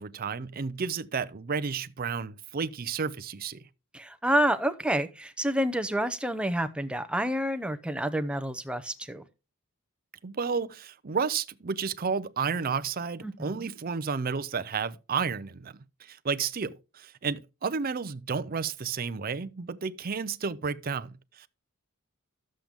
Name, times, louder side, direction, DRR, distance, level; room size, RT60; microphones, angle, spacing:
voice 1, 0.0-3.6 10.2-15.7 16.0-21.5, right 5 dB, 40° right, 0.5 m, -32 dB
voice 2, 3.9-9.3 13.2-13.7, right 1 dB, 5° right, 0.7 m, -29 dB
11.5 x 7.5 x 3.6 m
head